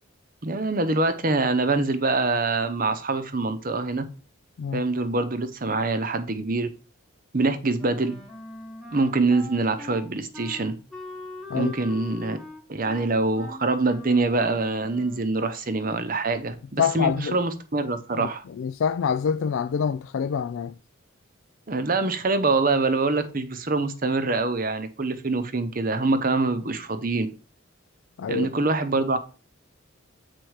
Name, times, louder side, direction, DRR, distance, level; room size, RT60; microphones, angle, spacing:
voice 1, 0.4-4.0 4.7-6.7 7.3-8.2 8.9-10.8 11.5-12.4 12.7-18.4 21.7-27.3 28.3-29.2, right 3 dB, 40° right, 0.8 m, -25 dB
Wind instrument woodwind instrument, 7.8-15.3, left 2 dB, ahead, 1.2 m, -42 dB
voice 2, 16.8-17.4 18.2-20.8 28.2-28.5, left 7 dB, 65° left, 0.3 m, -26 dB
7.9 x 4.3 x 4.8 m
head